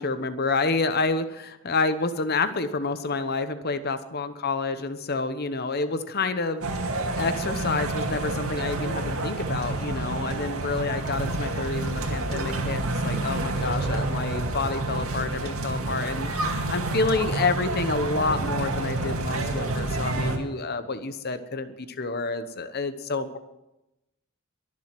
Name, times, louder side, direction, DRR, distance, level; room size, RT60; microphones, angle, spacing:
voice 1, 0.0-23.4, left 3 dB, 45° left, 11 dB, 0.9 m, -29 dB
sound 1, 6.6-20.4, right 2 dB, 75° right, 2.1 m, -28 dB
22.0 x 7.6 x 6.0 m, 0.96 s
head